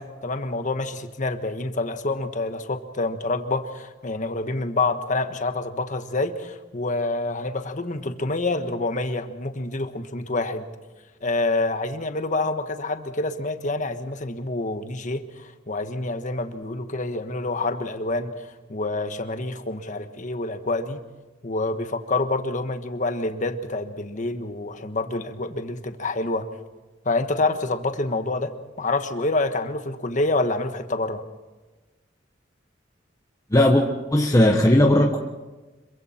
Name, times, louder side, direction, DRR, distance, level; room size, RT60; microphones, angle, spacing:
voice 1, 0.0-10.7 11.2-21.0 21.4-26.5 27.0-31.2, left 2 dB, 40° left, 8 dB, 1.4 m, -27 dB
voice 2, 33.5-33.8 34.1-35.2, left 1 dB, 20° left, 2 dB, 1.2 m, -17 dB
26.5 x 23.0 x 4.5 m, 1.2 s
head